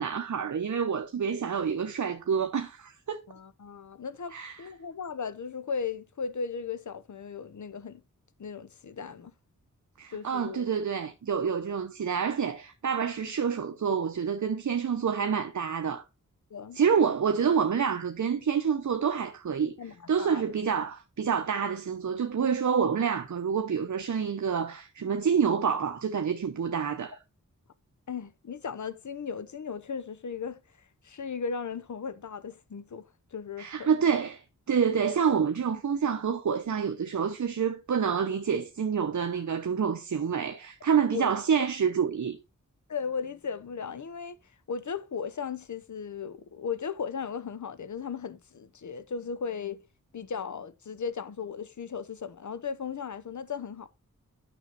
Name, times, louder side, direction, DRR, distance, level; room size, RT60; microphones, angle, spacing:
voice 1, 0.0-3.2 4.3-4.6 10.0-16.0 16.7-19.7 20.1-27.2 33.6-34.4 34.7-42.4, right 7 dB, 60° right, 0.8 m, -27 dB
voice 2, 3.3-8.0 8.4-9.3 10.1-10.7 16.5-16.8 19.8-20.5 28.1-30.6 31.0-33.0 33.3-33.9 41.1-41.3 42.9-44.4 44.7-49.8 50.1-53.9, left 6 dB, 60° left, 0.9 m, -36 dB
9.3 x 6.2 x 4.1 m
wide cardioid pair, 65°, 33 cm